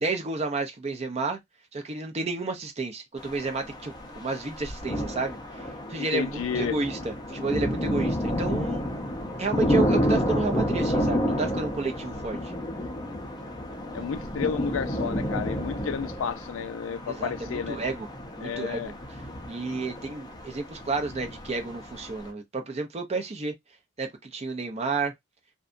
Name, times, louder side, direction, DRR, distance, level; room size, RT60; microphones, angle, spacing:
voice 1, 0.0-1.4 1.7-5.4 5.9-8.9 9.4-12.5 17.1-18.1 18.4-18.8 19.5-23.5 24.0-25.1, right 3 dB, 30° right, 0.5 m, -31 dB
sound 1, 3.2-22.3, equal, 20° left, 0.6 m, -30 dB
voice 2, 6.0-6.8 13.9-17.8 18.4-18.9, left 6 dB, 80° left, 0.4 m, -31 dB
2.6 x 2.2 x 2.4 m
head